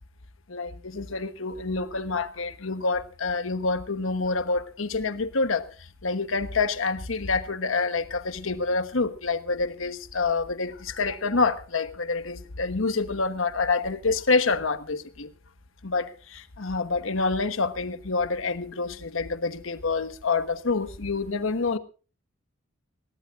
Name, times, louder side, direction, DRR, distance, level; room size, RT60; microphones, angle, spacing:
voice 1, 0.5-5.7 6.0-15.3 15.8-21.8, left 4 dB, 75° left, 1.1 m, -27 dB
20.5 x 18.5 x 2.6 m
head